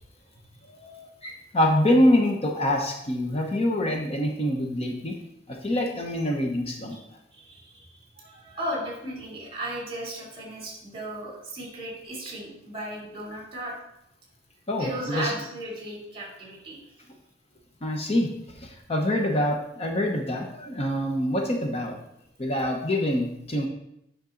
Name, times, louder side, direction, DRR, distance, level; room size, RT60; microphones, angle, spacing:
voice 1, 0.8-5.1 5.5-7.0 14.7-15.3 17.8-18.3 18.6-22.0 22.4-23.7, left 1 dB, 35° left, 1 dB, 0.9 m, -25 dB
voice 2, 7.3-13.7 14.8-16.8, right 1 dB, 30° right, -3 dB, 3.0 m, -35 dB
8.5 x 6.1 x 3.9 m, 0.80 s
head